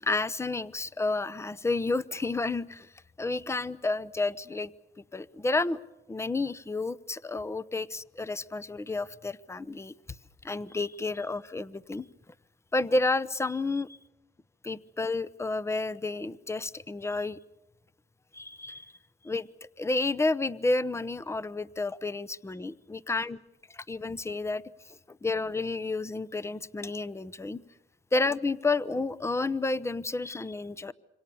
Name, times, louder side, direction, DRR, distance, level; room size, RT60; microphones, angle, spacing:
voice 1, 0.0-2.9 3.2-4.7 5.1-5.8 6.1-9.9 10.4-12.1 12.7-13.9 14.6-17.4 18.3-18.9 19.2-19.5 19.8-23.4 23.7-24.6 25.1-27.6 28.1-30.9, left 3 dB, 15° left, 18 dB, 0.8 m, -30 dB
26.5 x 25.0 x 7.0 m, 0.98 s
cardioid pair, 90°, 20 cm